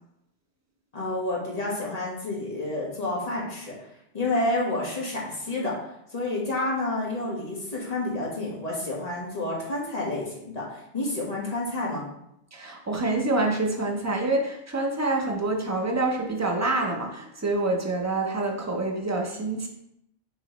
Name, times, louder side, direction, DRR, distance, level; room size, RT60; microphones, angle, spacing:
voice 1, 0.9-3.7 4.1-5.8 6.1-12.0, left 2 dB, 35° left, -4 dB, 1.2 m, -29 dB
voice 2, 12.5-19.7, right 2 dB, 25° right, 1 dB, 0.4 m, -26 dB
5.5 x 3.0 x 3.0 m, 0.80 s
omnidirectional pair, 1.2 m